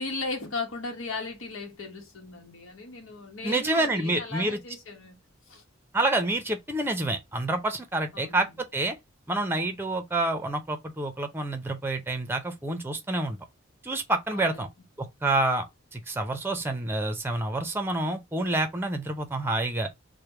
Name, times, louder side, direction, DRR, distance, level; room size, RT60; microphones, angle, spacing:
voice 1, 0.0-5.2 5.5-5.6 8.1-8.4 14.3-14.6, left 3 dB, 75° left, 1.1 m, -36 dB
voice 2, 3.4-4.6 5.9-9.0 9.3-13.4 13.8-14.7 15.0-15.7 15.9-19.9, right 2 dB, 10° right, 0.6 m, -28 dB
3.3 x 2.2 x 4.3 m
head